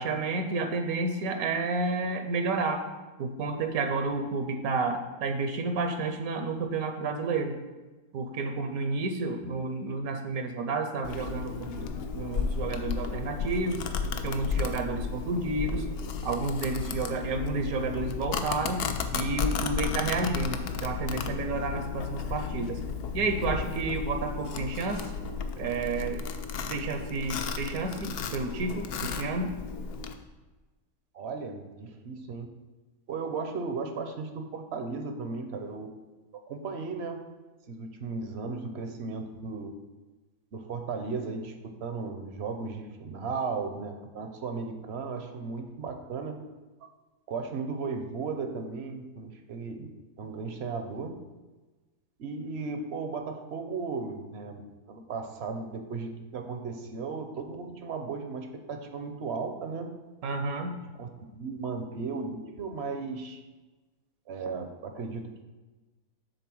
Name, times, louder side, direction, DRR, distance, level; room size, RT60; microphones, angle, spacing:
voice 1, 0.0-2.8 3.2-7.5 8.1-13.8 14.2-15.9 16.2-18.8 19.1-22.8 23.1-25.1 25.6-26.2 26.7-29.5 60.2-60.8, right 3 dB, 75° right, 5 dB, 1.1 m, -31 dB
Domestic sounds home sounds, 11.0-30.1, left 5 dB, 80° left, 0.5 m, -33 dB
voice 2, 31.1-32.6 33.1-35.9 36.3-37.2 37.7-39.7 40.5-46.3 47.3-51.2 52.2-59.9 61.0-63.4 64.3-65.4, right 4 dB, 60° right, 6 dB, 0.7 m, -36 dB
6.8 x 4.1 x 6.1 m, 1.2 s
omnidirectional pair, 1.6 m